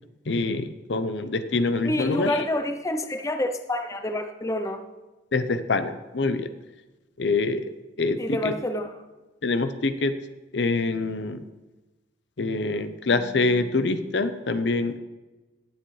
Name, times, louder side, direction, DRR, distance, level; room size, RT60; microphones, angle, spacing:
voice 1, 0.3-2.4 5.3-6.5 7.2-7.7 8.0-8.2 8.4-8.5 9.4-10.1 10.5-11.4 12.4-15.0, left 3 dB, 75° left, 10 dB, 0.7 m, -25 dB
voice 2, 1.8-4.9 8.2-9.0, left 1 dB, 20° left, 7 dB, 0.7 m, -28 dB
19.0 x 7.7 x 3.3 m, 1.1 s
head